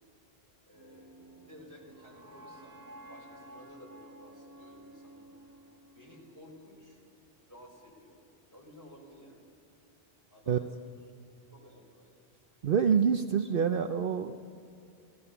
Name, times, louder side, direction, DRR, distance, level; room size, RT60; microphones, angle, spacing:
voice 1, 0.7-5.7 6.0-7.0 7.4-8.2 8.5-9.4 10.3-11.0 11.5-12.4, equal, 15° left, -1 dB, 5.0 m, -54 dB
sound 1, 0.7-6.8, right 1 dB, 20° right, 1.7 m, -53 dB
voice 2, 12.6-14.6, right 7 dB, 60° right, 8 dB, 0.8 m, -27 dB
28.5 x 18.5 x 7.0 m, 2.5 s
omnidirectional pair, 1.1 m